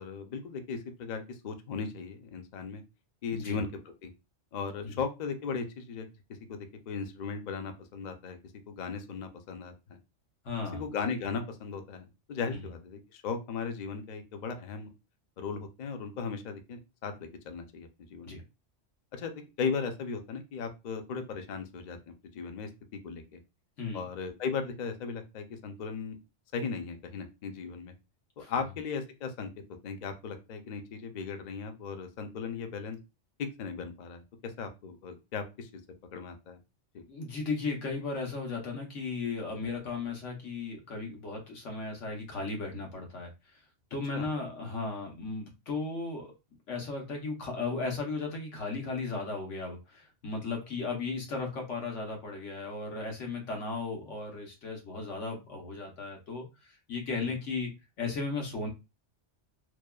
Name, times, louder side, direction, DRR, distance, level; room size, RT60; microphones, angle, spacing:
voice 1, 0.0-2.8 3.2-3.7 4.0-4.1 4.5-6.1 6.5-8.4 8.7-10.0 10.7-14.9 15.4-18.4 19.1-22.7 23.0-23.4 23.9-26.2 26.5-27.9 28.4-29.5 29.8-33.0 33.4-35.7 36.1-36.6 36.9-37.0 44.1-44.3 57.2-57.4, left 5 dB, 55° left, 6 dB, 0.5 m, -37 dB
voice 2, 10.4-10.8 18.2-18.4 23.8-24.0 28.4-28.5 37.1-43.6 43.9-46.3 46.7-57.7 58.0-58.7, left 3 dB, 85° left, 1 dB, 1.2 m, -36 dB
2.9 x 2.1 x 2.3 m, 0.26 s
omnidirectional pair, 1.2 m